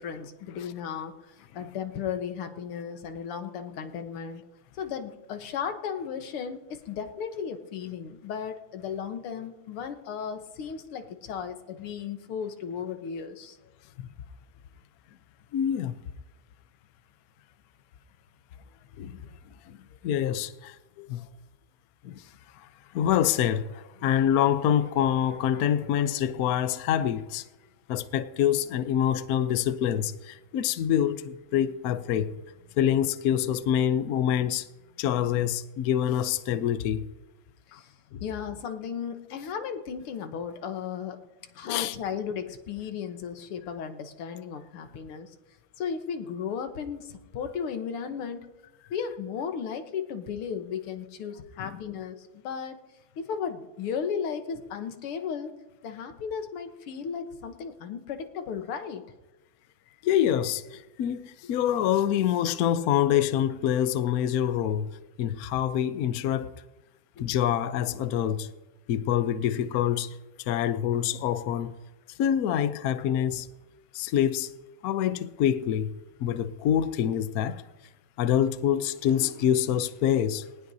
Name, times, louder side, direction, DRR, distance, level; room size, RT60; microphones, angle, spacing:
voice 1, 0.0-4.5 4.8-13.6 37.7-37.9 38.2-41.2 41.6-45.3 45.8-48.5 48.9-52.8 53.2-55.5 55.8-59.1 67.2-67.3 79.0-79.3, left 7 dB, 90° left, 2.0 m, -35 dB
voice 2, 15.5-16.0 19.0-19.2 19.7-19.8 20.0-21.3 22.0-22.2 22.6-27.5 27.9-32.3 32.8-34.7 35.0-37.0 37.7-37.8 38.1-38.2 41.6-42.0 51.6-51.8 60.0-64.9 65.2-66.5 67.2-68.5 68.9-71.8 72.2-73.5 73.9-74.5 74.8-75.9 76.2-77.6 78.2-80.5, left 10 dB, 70° left, 0.8 m, -26 dB
19.5 x 19.0 x 2.7 m
omnidirectional pair, 2.4 m